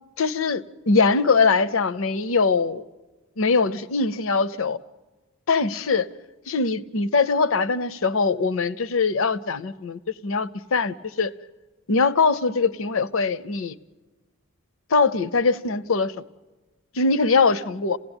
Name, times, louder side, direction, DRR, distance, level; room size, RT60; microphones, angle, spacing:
voice 1, 0.2-2.9 3.4-4.8 5.5-6.1 6.5-11.3 11.9-13.7 14.9-16.1 16.9-18.0, left 4 dB, 65° left, 0.7 m, -22 dB
27.5 x 17.0 x 9.0 m
head